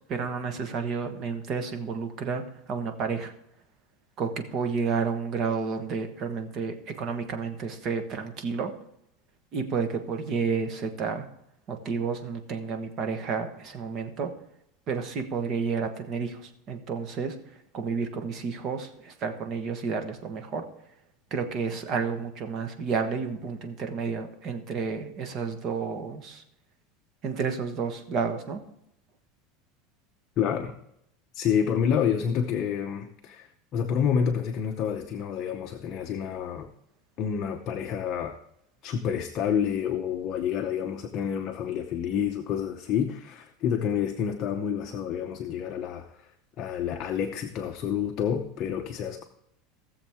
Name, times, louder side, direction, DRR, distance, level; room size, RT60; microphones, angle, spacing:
voice 1, 0.1-2.4 2.7-3.3 4.2-8.7 9.5-11.3 11.7-14.3 14.9-17.4 17.7-20.6 21.3-26.4 27.2-28.6, right 5 dB, 35° right, 7 dB, 1.2 m, -31 dB
voice 2, 30.4-30.7 31.3-36.7 37.2-38.3 38.8-46.3 46.6-49.2, left 8 dB, 35° left, 5 dB, 0.7 m, -28 dB
17.0 x 7.2 x 3.5 m, 0.77 s
supercardioid pair, 160°, 0 cm